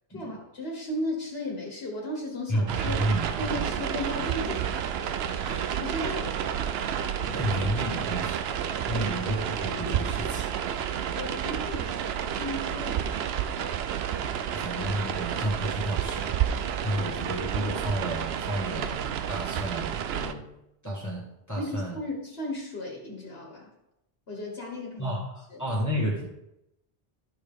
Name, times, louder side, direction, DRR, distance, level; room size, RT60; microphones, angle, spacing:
voice 1, 0.1-3.1 3.4-4.9 5.5-6.3 8.9-9.2 11.1-13.8 21.6-23.7 24.3-25.2 25.5-25.6, left 1 dB, 80° left, -1 dB, 1.7 m, -36 dB
voice 2, 2.5-3.7 5.4-5.7 6.9-10.6 14.5-16.4 16.8-19.0 19.3-20.5 20.8-22.0 25.0-26.3, equal, 15° left, -4 dB, 1.6 m, -32 dB
sound 1, 2.7-20.3, right 9 dB, 80° right, 0.8 m, -30 dB
11.5 x 6.2 x 3.5 m, 0.87 s
omnidirectional pair, 1.0 m